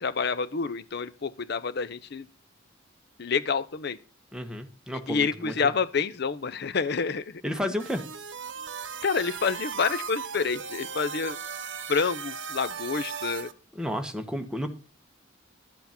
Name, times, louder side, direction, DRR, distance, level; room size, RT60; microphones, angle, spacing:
voice 1, 0.0-2.3 3.2-4.0 5.1-7.4 9.0-11.4 11.9-13.5, left 5 dB, 55° left, 14 dB, 0.6 m, -28 dB
voice 2, 4.3-5.7 7.4-8.0 13.7-14.7, equal, 5° right, 5 dB, 1.2 m, -32 dB
sound 1, 7.8-13.5, right 7 dB, 65° right, 1.0 m, -37 dB
12.0 x 8.1 x 5.8 m, 0.36 s
head